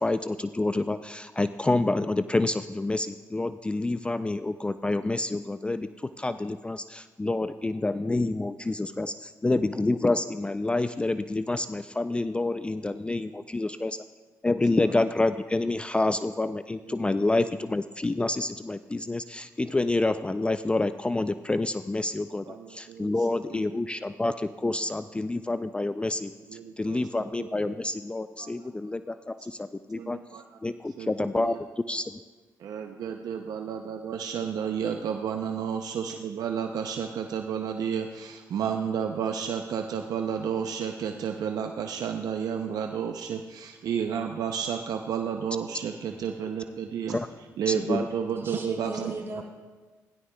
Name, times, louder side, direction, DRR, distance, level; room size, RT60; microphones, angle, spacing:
voice 1, 0.0-14.0 14.4-26.3 26.8-30.2 30.6-32.2 47.1-47.3 47.7-48.1, left 2 dB, 15° left, 11 dB, 0.3 m, -28 dB
voice 2, 16.8-17.5 19.0-19.1 22.4-23.8 24.7-24.8 26.5-27.7 28.4-28.5 29.1-29.5 29.9-30.6 30.9-31.6 32.6-49.1, right 7 dB, 75° right, 5 dB, 0.5 m, -32 dB
voice 3, 48.4-49.4, right 2 dB, 40° right, -1 dB, 3.4 m, -37 dB
16.0 x 11.0 x 2.2 m, 1.3 s
cardioid pair, 65°, 7 cm